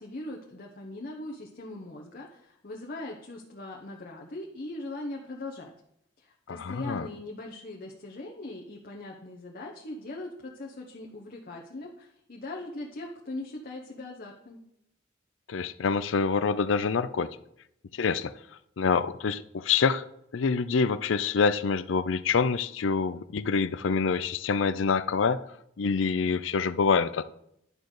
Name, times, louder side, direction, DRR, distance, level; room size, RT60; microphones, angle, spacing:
voice 1, 0.0-5.7 6.2-14.6, left 2 dB, 50° left, 1.1 m, -40 dB
voice 2, 6.5-7.1 15.5-17.3 17.9-18.3 18.8-20.1 20.3-25.4 25.8-27.2, left 5 dB, 80° left, 0.5 m, -26 dB
11.0 x 3.9 x 6.5 m
head